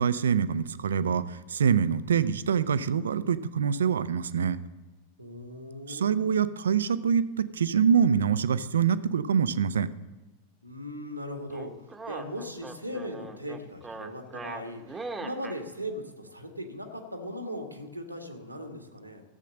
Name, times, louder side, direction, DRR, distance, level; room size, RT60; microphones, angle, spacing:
voice 1, 0.0-4.6 5.9-9.9, right 7 dB, 65° right, 15 dB, 0.6 m, -25 dB
voice 2, 5.2-6.3 10.6-19.2, equal, 90° right, 5 dB, 1.6 m, -39 dB
sound 1, 11.5-15.6, right 3 dB, 10° right, 1.1 m, -40 dB
14.5 x 7.6 x 6.5 m, 1.2 s
figure-of-eight pair, 90°, 0 cm